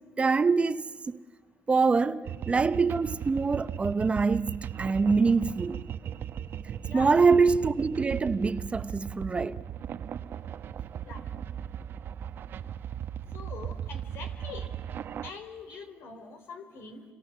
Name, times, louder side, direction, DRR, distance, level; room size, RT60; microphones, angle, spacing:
voice 1, 0.2-1.2 1.7-5.8 6.9-9.6, right 4 dB, 30° right, 0.9 m, -25 dB
sound 1, 2.3-15.3, right 9 dB, 60° right, 1.0 m, -37 dB
voice 2, 13.3-14.7 15.2-17.0, left 5 dB, 70° left, 4.6 m, -43 dB
29.5 x 26.5 x 7.5 m
cardioid pair, 85°, 4 cm